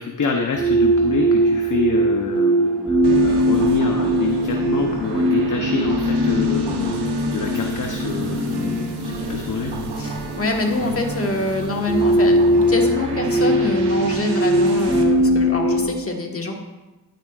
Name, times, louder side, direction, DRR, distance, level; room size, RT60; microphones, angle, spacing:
voice 1, 0.0-7.0 7.3-9.7, left 4 dB, 50° left, 2 dB, 0.8 m, -26 dB
sound 1, 0.5-15.8, right 1 dB, 5° right, 2.7 m, -20 dB
sound 2, 3.0-15.0, right 3 dB, 80° right, 1.0 m, -32 dB
voice 2, 10.0-16.5, left 2 dB, 35° left, 1 dB, 1.5 m, -25 dB
9.9 x 9.1 x 2.4 m, 1.1 s
cardioid pair, 80°, 40 cm